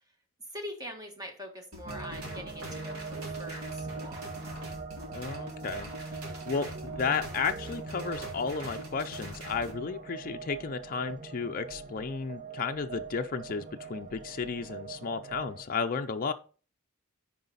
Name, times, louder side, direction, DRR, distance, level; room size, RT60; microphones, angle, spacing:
voice 1, 0.5-4.3, equal, 15° right, 1.6 m, -43 dB
sound 1, 1.7-9.7, equal, 70° right, 2.3 m, -44 dB
sound 2, 1.8-15.6, right 4 dB, 35° right, 0.8 m, -42 dB
voice 2, 5.1-5.9 6.5-16.3, left 5 dB, 40° left, 0.5 m, -33 dB
9.3 x 4.9 x 4.0 m
head